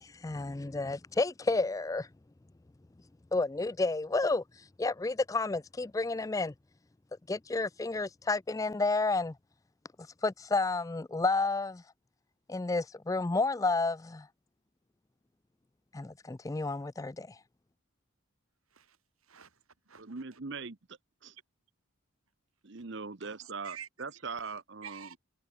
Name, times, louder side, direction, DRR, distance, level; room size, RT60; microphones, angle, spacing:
voice 1, 0.0-2.1 3.3-4.4 4.8-6.5 7.3-9.3 10.2-11.8 12.5-14.3 15.9-17.4, left 3 dB, 15° left, 0.3 m, -31 dB
voice 2, 19.2-20.4 23.2-23.9 24.2-25.2, right 8 dB, 85° right, 5.0 m, -50 dB
voice 3, 20.0-20.8 21.2-21.4 22.6-25.1, right 4 dB, 55° right, 0.9 m, -41 dB
head